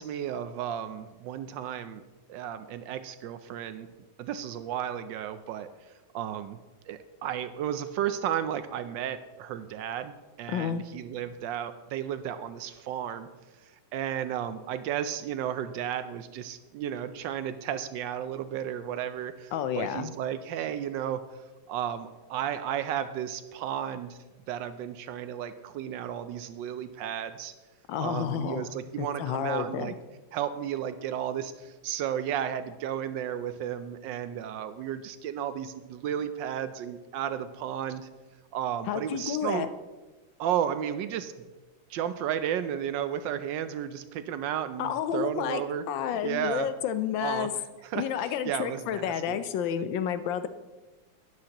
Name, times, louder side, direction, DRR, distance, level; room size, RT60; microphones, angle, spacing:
voice 1, 0.0-2.0 2.3-3.9 4.2-5.7 6.1-6.6 6.9-10.1 10.4-13.3 13.9-21.2 21.7-24.2 24.5-27.5 28.0-29.9 30.3-38.1 38.5-39.7 40.4-41.3 41.9-45.8 46.2-46.7 47.2-47.5 47.8-49.4, right 9 dB, 75° right, 11 dB, 1.2 m, -33 dB
voice 2, 10.5-10.8 19.5-20.1 27.9-28.6 29.0-29.9 38.9-39.7 44.8-47.5 47.9-50.5, left 9 dB, 75° left, 11 dB, 1.3 m, -30 dB
12.0 x 9.6 x 2.9 m, 1.2 s
omnidirectional pair, 2.1 m